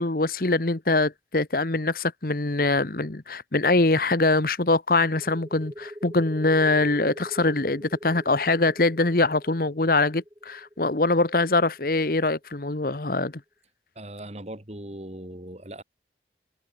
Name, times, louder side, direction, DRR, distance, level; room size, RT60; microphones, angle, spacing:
voice 1, 0.0-13.3, left 2 dB, 55° left, 1.2 m, -23 dB
sound 1, 5.2-12.4, equal, 15° right, 5.5 m, -43 dB
voice 2, 13.9-15.8, right 1 dB, 35° right, 3.0 m, -39 dB
head